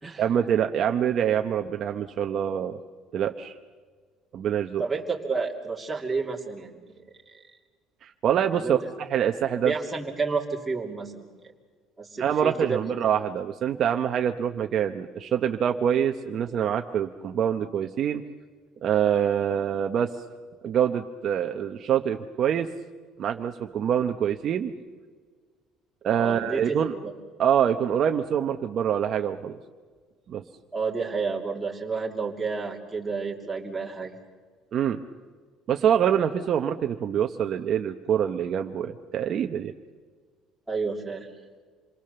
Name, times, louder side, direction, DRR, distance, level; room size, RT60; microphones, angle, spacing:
voice 1, 0.2-2.8 3.1-3.5 4.3-4.8 8.0-9.7 12.2-18.2 18.8-20.1 20.6-22.7 23.2-24.7 26.0-26.9 27.4-29.6 30.3-30.4 34.7-35.0 35.7-39.7, right 9 dB, 40° right, 5 dB, 0.9 m, -25 dB
voice 2, 4.8-6.8 7.3-7.4 8.5-8.7 9.6-11.2 12.0-12.9 26.1-27.1 30.7-34.2 40.7-41.3, right 4 dB, 10° right, -2 dB, 2.8 m, -30 dB
27.5 x 23.0 x 6.8 m, 1.6 s
cardioid pair, 165°, 0 cm